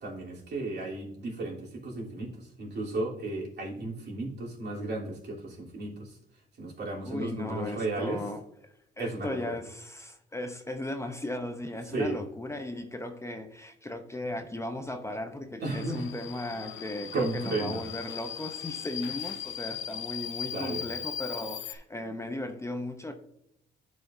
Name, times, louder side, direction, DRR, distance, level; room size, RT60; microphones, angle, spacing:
voice 1, 0.0-6.2 6.6-8.2 9.0-9.4 11.9-12.2 15.6-16.1 17.1-17.8 20.5-20.8, right 2 dB, 60° right, 3.2 m, -34 dB
voice 2, 7.0-23.1, left 1 dB, 15° left, 0.7 m, -37 dB
Subway metro underground, 15.7-21.8, left 10 dB, 75° left, 0.8 m, -39 dB
12.0 x 5.0 x 2.6 m
cardioid pair, 90°, 20 cm